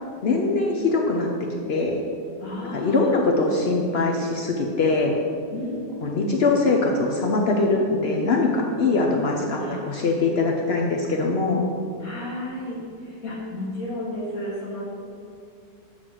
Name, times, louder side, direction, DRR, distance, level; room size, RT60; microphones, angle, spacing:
voice 1, 0.2-1.3 1.7-2.0 2.7-5.1 6.0-11.6, left 3 dB, 90° left, 1 dB, 0.5 m, -22 dB
voice 2, 2.4-3.1 5.5-5.9 9.6-9.8 12.0-14.9, left 1 dB, 60° left, -5 dB, 1.4 m, -33 dB
7.7 x 4.0 x 6.1 m, 2.4 s
omnidirectional pair, 1.9 m